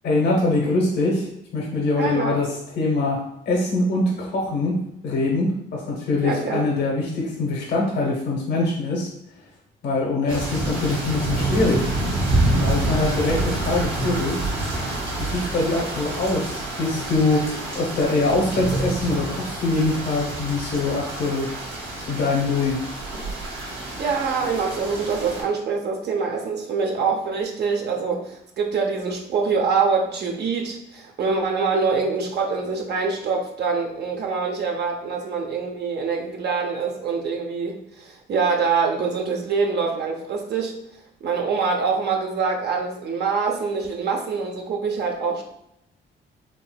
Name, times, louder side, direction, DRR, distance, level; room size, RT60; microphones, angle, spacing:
voice 1, 0.0-1.3 1.5-2.5 2.8-4.8 5.0-9.1 9.8-11.9 12.5-14.4 15.2-17.5 17.7-21.5 22.0-22.8, left 2 dB, 60° left, -2 dB, 0.8 m, -23 dB
voice 2, 2.0-2.4 6.2-6.7 24.0-40.8 41.2-45.4, right 5 dB, 55° right, 1 dB, 0.6 m, -25 dB
sound 1, 10.3-25.4, right 2 dB, 85° right, 1.2 m, -27 dB
3.7 x 2.7 x 2.2 m, 0.79 s
cardioid pair, 90°, 20 cm